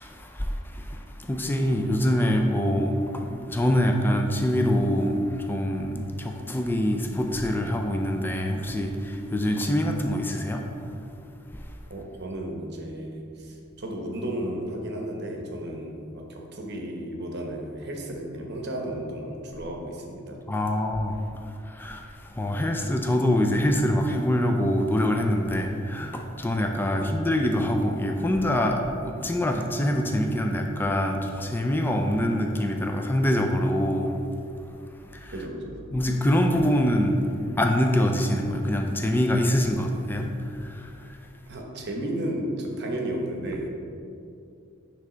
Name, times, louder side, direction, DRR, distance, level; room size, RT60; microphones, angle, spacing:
voice 1, 0.0-10.7 20.5-21.2 21.7-22.0 22.4-34.1 35.1-35.3 35.9-37.2 37.6-40.3 40.6-40.8, equal, 10° left, 3 dB, 0.4 m, -25 dB
voice 2, 11.9-20.4 26.9-27.1 35.3-35.8 41.5-43.7, right 1 dB, 55° right, 1 dB, 0.9 m, -33 dB
9.4 x 3.3 x 3.8 m, 2.6 s
head